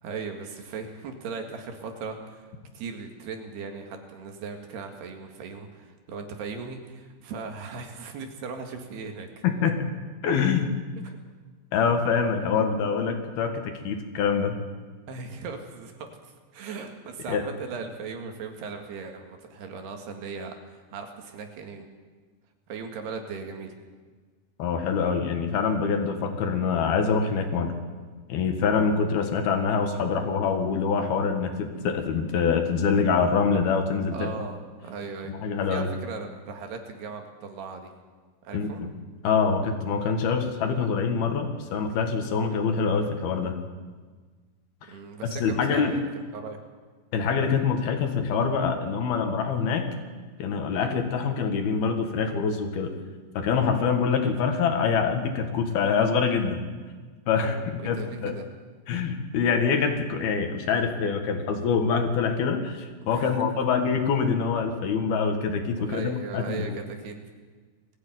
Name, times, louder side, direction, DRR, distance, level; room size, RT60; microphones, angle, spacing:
voice 1, 0.0-9.4 11.0-11.2 15.1-21.9 22.7-23.8 34.1-35.3 35.7-37.9 38.4-38.8 44.9-46.1 46.3-46.6 57.4-58.5 63.0-63.7 65.8-67.2, right 5 dB, 70° right, 4 dB, 3.8 m, -38 dB
voice 2, 9.4-9.8 10.2-10.8 11.7-14.6 17.3-17.4 24.6-27.7 28.3-34.3 35.4-35.9 38.5-38.9 39.2-43.6 45.2-45.9 47.1-49.9 50.4-52.9 53.3-56.7 57.3-58.3 58.9-66.8, left 5 dB, 65° left, 5 dB, 3.4 m, -25 dB
20.5 x 15.0 x 9.3 m, 1.4 s
omnidirectional pair, 5.0 m